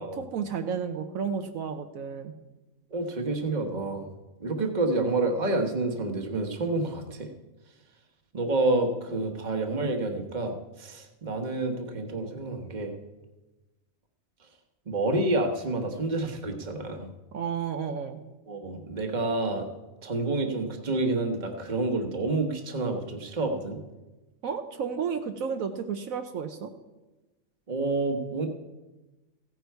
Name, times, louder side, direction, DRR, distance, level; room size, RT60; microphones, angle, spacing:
voice 1, 0.0-2.3 17.3-18.2 24.4-26.7, right 6 dB, 75° right, 7 dB, 1.2 m, -32 dB
voice 2, 2.9-4.1 4.4-7.3 8.3-12.9 14.9-17.1 18.5-19.7 20.0-23.8 27.7-28.5, right 2 dB, 35° right, 4 dB, 1.3 m, -28 dB
15.5 x 9.6 x 4.6 m, 1.1 s
omnidirectional pair, 1.5 m